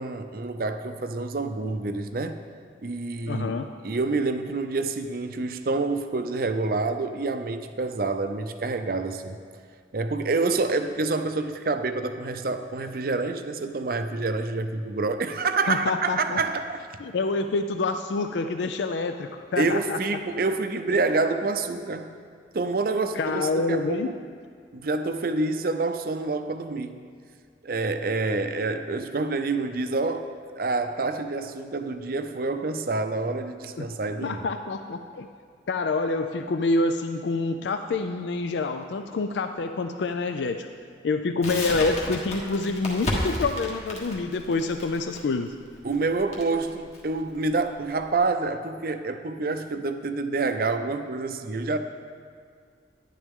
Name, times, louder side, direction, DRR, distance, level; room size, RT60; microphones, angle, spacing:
voice 1, 0.0-2.4 2.8-3.6 3.8-9.4 9.9-16.8 19.6-22.1 22.5-24.1 24.7-27.0 27.6-30.3 30.6-34.4 45.8-51.8, right 3 dB, 50° right, 8 dB, 0.5 m, -27 dB
voice 2, 3.3-3.7 15.7-16.4 17.0-20.0 23.2-24.1 33.8-33.9 34.2-35.3 35.7-40.7 41.0-45.5, left 3 dB, 75° left, 7 dB, 0.4 m, -27 dB
Crackle, 41.4-48.2, left 1 dB, 35° left, 1.5 m, -33 dB
11.0 x 10.0 x 3.7 m, 2.1 s
head